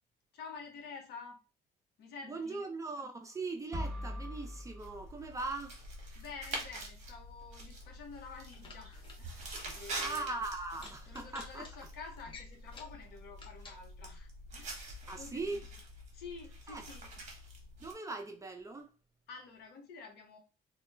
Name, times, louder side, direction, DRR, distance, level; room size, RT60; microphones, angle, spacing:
voice 1, 0.3-1.4 2.0-2.7 6.1-10.3 11.1-14.9 15.2-15.7 16.1-17.1 19.3-20.4, left 5 dB, 75° left, 0.9 m, -49 dB
voice 2, 2.2-5.8 10.0-11.7 15.1-15.6 16.7-16.8 17.8-18.9, right 3 dB, 20° right, 0.4 m, -40 dB
sound 1, 3.7-5.8, equal, ahead, 0.9 m, -42 dB
sound 2, 4.8-17.9, right 1 dB, 45° right, 0.9 m, -46 dB
sound 3, 8.5-9.2 9.4-9.8 10.1-10.3 10.8-11.7 12.2-13.0 13.4-13.8, left 4 dB, 30° left, 0.6 m, -52 dB
2.2 x 2.0 x 3.2 m
cardioid pair, 110°, 17 cm